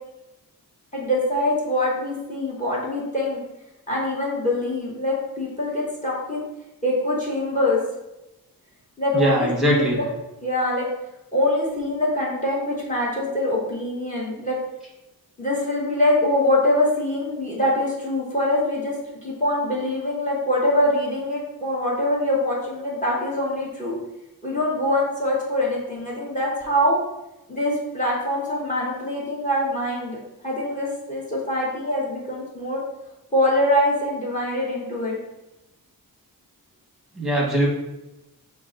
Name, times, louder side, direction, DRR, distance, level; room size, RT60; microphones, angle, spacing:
voice 1, 0.9-3.4 3.9-6.4 6.8-7.8 9.0-10.0 10.4-10.9 11.3-14.6 15.4-18.9 19.2-24.0 24.4-27.0 27.5-30.2 30.4-32.8 33.3-35.2, left 1 dB, 20° left, -3 dB, 0.9 m, -24 dB
voice 2, 9.1-10.0 37.2-37.7, equal, ahead, -3 dB, 1.2 m, -21 dB
5.6 x 2.4 x 3.8 m, 0.96 s
wide cardioid pair, 150°, 36 cm